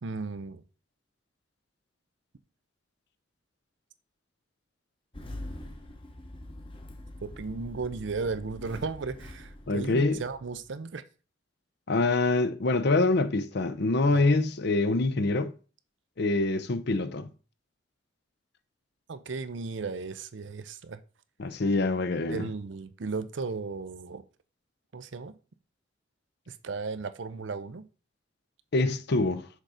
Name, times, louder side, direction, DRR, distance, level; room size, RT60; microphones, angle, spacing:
voice 1, 0.0-0.6 7.2-11.0 14.1-14.3 19.1-21.0 22.3-24.2 24.9-25.3 26.5-27.9, right 4 dB, 70° right, 0.6 m, -35 dB
Engine starting, 5.1-10.7, left 1 dB, 25° left, 0.9 m, -44 dB
voice 2, 9.7-10.2 11.9-15.5 16.2-17.3 21.4-22.5 28.7-29.5, left 2 dB, 60° left, 0.6 m, -25 dB
6.5 x 3.8 x 4.9 m
head